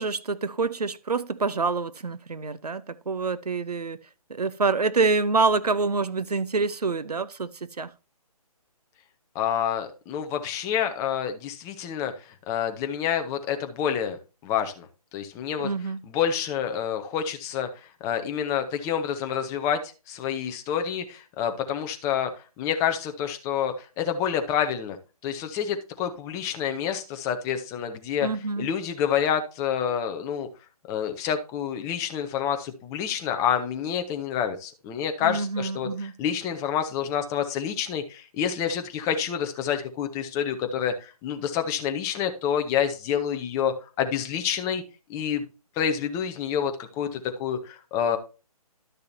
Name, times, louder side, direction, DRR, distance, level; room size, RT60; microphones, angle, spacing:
voice 1, 0.0-4.0 4.3-7.9 15.6-16.0 28.2-28.7 35.2-36.1, right 4 dB, 90° right, 0.8 m, -26 dB
voice 2, 9.3-14.2 14.4-14.9 15.1-15.7 16.1-17.7 18.0-19.8 20.1-22.3 22.6-25.0 25.2-28.3 28.6-30.5 30.9-44.8 45.1-45.4 45.8-48.2, left 8 dB, 15° left, 0.9 m, -28 dB
12.0 x 6.7 x 2.7 m
figure-of-eight pair, 145°, 20 cm